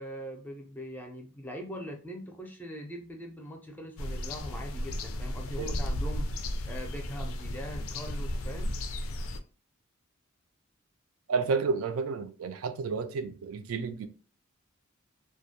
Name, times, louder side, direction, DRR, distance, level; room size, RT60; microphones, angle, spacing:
voice 1, 0.0-6.3 6.6-8.7, equal, 10° left, 0.4 m, -41 dB
sound 1, 4.0-9.4, left 1 dB, 75° left, 0.3 m, -34 dB
voice 2, 11.3-14.1, right 5 dB, 90° right, 0.4 m, -31 dB
2.2 x 2.1 x 2.7 m
head